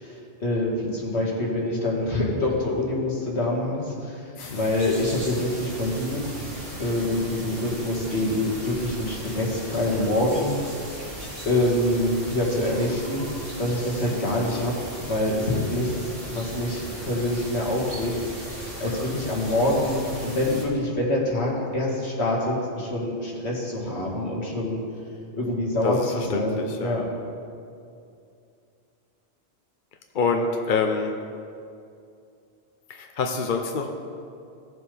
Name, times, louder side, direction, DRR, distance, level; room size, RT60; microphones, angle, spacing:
voice 1, 0.0-6.3 6.8-10.7 11.5-13.3 13.6-24.8 25.3-27.1, left 1 dB, 70° left, -3 dB, 2.2 m, -26 dB
sound 1, 4.4-20.6, right 1 dB, 55° right, 2.6 m, -37 dB
voice 2, 25.8-27.0 30.1-31.1 32.9-33.9, left 4 dB, 55° left, 4 dB, 0.8 m, -26 dB
17.0 x 7.6 x 3.4 m, 2.5 s
omnidirectional pair, 1.1 m